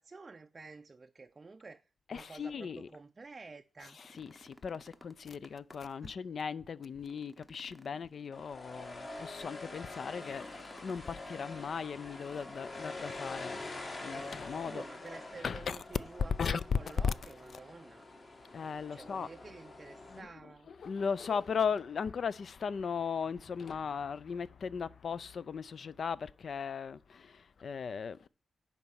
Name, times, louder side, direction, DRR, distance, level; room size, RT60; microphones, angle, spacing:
voice 1, 0.0-4.0 6.0-6.1 14.6-18.1 18.9-20.7, right 3 dB, 30° right, 0.4 m, -50 dB
voice 2, 2.1-2.9 3.8-10.5 10.8-14.8 15.3-15.8 16.4-16.8 17.0-17.6 18.5-19.3 20.1-28.3, left 6 dB, 55° left, 0.4 m, -37 dB
sound 1, 3.8-6.0 6.4-6.5 6.9-8.8 10.1-11.2 12.1-13.0 14.1-14.8 15.1-15.2 15.8-16.4 17.5-17.6, equal, 5° left, 0.8 m, -59 dB
sound 2, 8.3-20.2, left 2 dB, 35° left, 1.6 m, -45 dB
10.5 x 4.2 x 7.0 m
wide cardioid pair, 145°, 0 cm